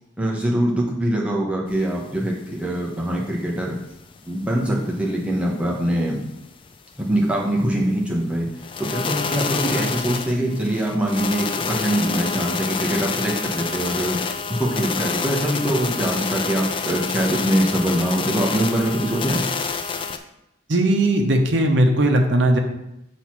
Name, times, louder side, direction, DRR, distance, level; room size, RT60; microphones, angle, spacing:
voice 1, 0.2-3.8 4.2-6.2 7.0-8.5 8.8-14.2 14.5-19.4, right 1 dB, 5° right, -3 dB, 1.0 m, -23 dB
sound 1, 1.7-1.8 2.1-2.2 2.6-2.7 3.1-3.2 3.6-4.2 4.6-4.7 5.1-5.2 5.6-5.7 6.2-6.3 6.7-6.8 7.2-7.3 7.6-7.7 8.2-8.3 8.6-20.2, left 5 dB, 25° left, 0.3 m, -27 dB
voice 2, 20.7-22.6, right 1 dB, 60° right, 3 dB, 0.9 m, -18 dB
6.4 x 3.2 x 5.8 m, 0.85 s
head